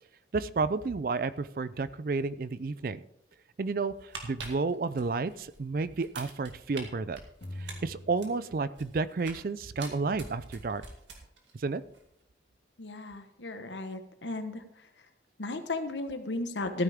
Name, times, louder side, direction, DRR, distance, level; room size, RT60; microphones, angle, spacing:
voice 1, 0.3-3.0 3.6-7.2 7.6-10.8 11.5-11.8, right 4 dB, 50° right, 16 dB, 0.4 m, -31 dB
sound 1, 3.9-5.6 6.0-6.8 7.1-9.5 9.8-11.5 11.8-12.0, right 4 dB, 85° right, 2.1 m, -45 dB
sound 2, 7.4-9.2, left 1 dB, 65° left, 2.2 m, -44 dB
voice 2, 12.8-14.6 15.4-16.8, left 2 dB, 80° left, 8 dB, 1.3 m, -34 dB
14.5 x 9.3 x 3.6 m, 0.76 s
head